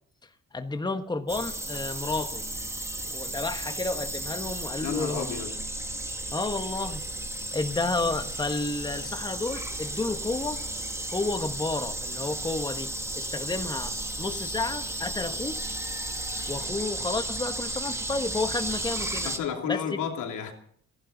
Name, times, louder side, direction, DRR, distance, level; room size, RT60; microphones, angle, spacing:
voice 1, 0.5-2.4 3.1-5.4 6.3-7.0 7.5-10.6 11.1-15.6 16.5-19.3 19.7-19.8, left 3 dB, 15° left, 1.3 m, -31 dB
sound 1, 1.3-19.4, right 1 dB, 10° right, 2.1 m, -34 dB
voice 2, 4.8-5.5 19.2-20.5, left 8 dB, 85° left, 2.9 m, -31 dB
29.5 x 12.0 x 4.0 m
cardioid pair, 90°, 30 cm